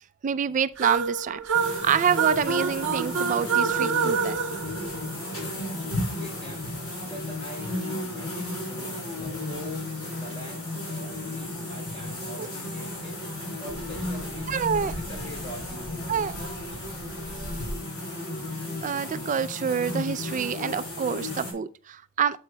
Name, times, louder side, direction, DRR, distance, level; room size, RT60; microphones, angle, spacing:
voice 1, 0.2-4.4 12.4-12.5 14.5-14.9 16.1-16.4 18.8-22.4, right 7 dB, 35° right, 0.3 m, -27 dB
sound 1, 0.8-5.5, right 6 dB, 60° right, 0.7 m, -27 dB
sound 2, 1.5-21.5, left 1 dB, 65° left, 3.8 m, -34 dB
voice 2, 5.5-6.7 7.0-9.8 10.2-13.1 13.6-14.5 14.8-16.5, equal, 25° left, 3.9 m, -43 dB
8.4 x 7.8 x 2.2 m
head